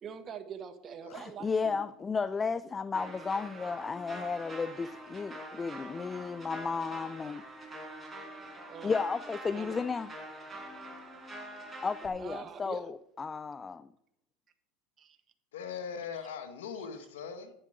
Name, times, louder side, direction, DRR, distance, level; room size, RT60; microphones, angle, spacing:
voice 1, 0.0-1.8 8.4-9.1 9.5-9.9 12.2-12.9 15.0-15.2, right 7 dB, 35° right, 1.5 m, -44 dB
voice 2, 1.1-7.4 8.8-10.1 11.8-13.9, left 5 dB, 20° left, 0.4 m, -33 dB
sound 1, 2.9-12.1, right 1 dB, 15° right, 5.2 m, -45 dB
voice 3, 15.5-17.5, left 6 dB, 85° left, 1.4 m, -40 dB
11.0 x 9.9 x 5.0 m
supercardioid pair, 105°, 0 cm